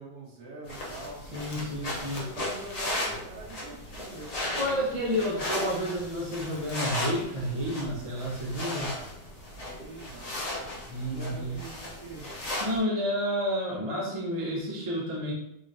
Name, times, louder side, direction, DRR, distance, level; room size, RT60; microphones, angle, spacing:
voice 1, 0.0-1.2 1.8-5.6 9.5-10.4 11.0-12.3, right 2 dB, 65° right, -5 dB, 1.6 m, -44 dB
sound 1, 0.7-12.8, left 1 dB, 50° left, 0.4 m, -36 dB
voice 2, 1.3-2.2 4.5-8.9 10.8-11.5 12.6-15.3, equal, 25° right, -5 dB, 0.7 m, -30 dB
3.9 x 3.2 x 2.6 m, 0.82 s
omnidirectional pair, 2.0 m